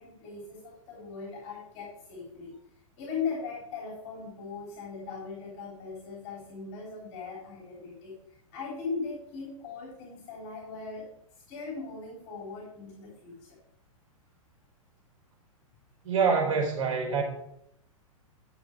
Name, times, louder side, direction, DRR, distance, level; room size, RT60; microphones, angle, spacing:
voice 1, 0.0-2.6 3.0-13.6, left 5 dB, 40° left, -2 dB, 3.8 m, -39 dB
voice 2, 16.0-17.2, right 5 dB, 60° right, -1 dB, 4.6 m, -25 dB
12.0 x 7.1 x 4.7 m, 0.76 s
figure-of-eight pair, 105°, 18 cm